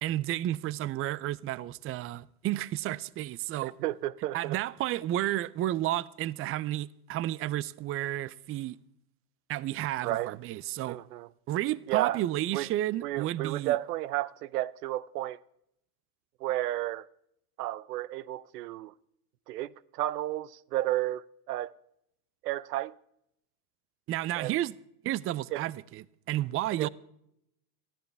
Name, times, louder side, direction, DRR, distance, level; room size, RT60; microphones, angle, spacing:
voice 1, 0.0-3.7 4.3-8.8 9.5-11.0 11.5-13.7 24.1-24.8 25.0-26.9, right 14 dB, 30° right, 0.5 m, -32 dB
voice 2, 3.6-4.6 10.0-10.3 10.9-11.3 11.9-12.2 12.5-12.7 13.0-15.4 16.4-17.1 17.6-18.9 19.5-21.8 22.4-23.0 24.4-24.5 25.5-25.6 26.8-26.9, right 15 dB, 85° right, 0.6 m, -32 dB
21.5 x 14.0 x 3.4 m
hypercardioid pair, 90°, 46 cm